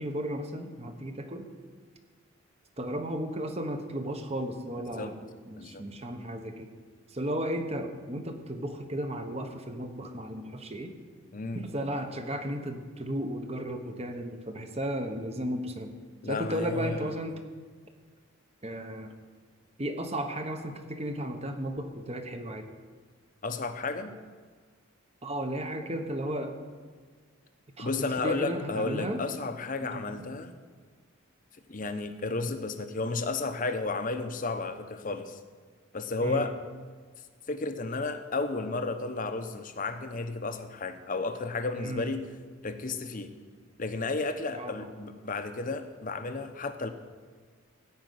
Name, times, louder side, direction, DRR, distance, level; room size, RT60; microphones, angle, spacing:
voice 1, 0.0-1.5 2.8-5.1 5.4-6.7 7.1-10.9 11.5-15.9 16.2-17.4 18.6-19.1 19.8-22.7 25.2-26.5 27.8-27.9 28.2-29.2 29.8-30.0 36.2-36.5 41.8-42.2 44.5-44.9, right 1 dB, 30° right, 6 dB, 1.0 m, -34 dB
voice 2, 11.3-11.6 16.2-17.1 23.4-24.1 27.8-30.5 31.7-35.4 35.9-36.5 37.5-42.2 42.6-43.3 43.8-46.9, left 3 dB, 40° left, 8 dB, 0.8 m, -32 dB
15.0 x 5.1 x 9.4 m, 1.5 s
head